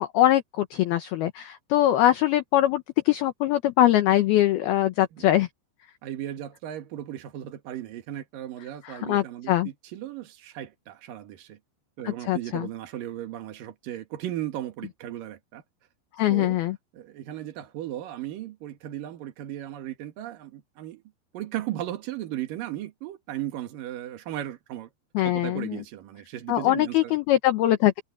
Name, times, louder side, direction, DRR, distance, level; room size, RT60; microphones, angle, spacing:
voice 1, 0.0-5.5 8.8-9.7 12.0-12.7 16.2-16.8 25.1-25.8 26.5-28.0, left 13 dB, 75° left, 2.3 m, -22 dB
voice 2, 6.0-11.6 12.0-15.6 16.3-16.6 16.9-21.0 21.3-24.9 25.2-27.2, right 13 dB, 60° right, 2.6 m, -36 dB
omnidirectional pair, 5.8 m